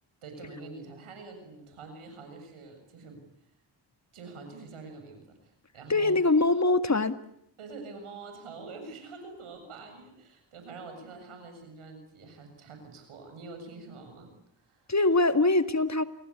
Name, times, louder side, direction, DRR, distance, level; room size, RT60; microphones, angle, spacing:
voice 1, 0.2-3.2 4.1-6.2 7.6-14.9, right 3 dB, 85° right, 6 dB, 7.2 m, -46 dB
voice 2, 5.9-7.2 14.9-16.0, left 2 dB, 35° left, 10 dB, 2.0 m, -23 dB
29.5 x 22.5 x 8.5 m, 0.74 s
supercardioid pair, 45°, 49 cm